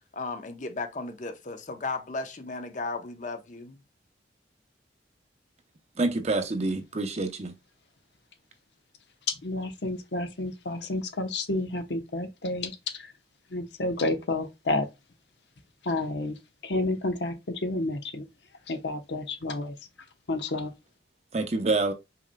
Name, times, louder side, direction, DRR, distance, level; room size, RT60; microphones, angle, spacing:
voice 1, 0.1-3.8, left 3 dB, 45° left, 0.8 m, -35 dB
voice 2, 6.0-7.5 21.3-21.9, right 2 dB, 40° right, 0.7 m, -27 dB
voice 3, 9.3-13.1 13.5-14.9 15.8-16.4 16.6-18.2 18.7-19.7 20.3-20.7, left 2 dB, 75° left, 0.9 m, -30 dB
5.6 x 4.2 x 2.2 m
head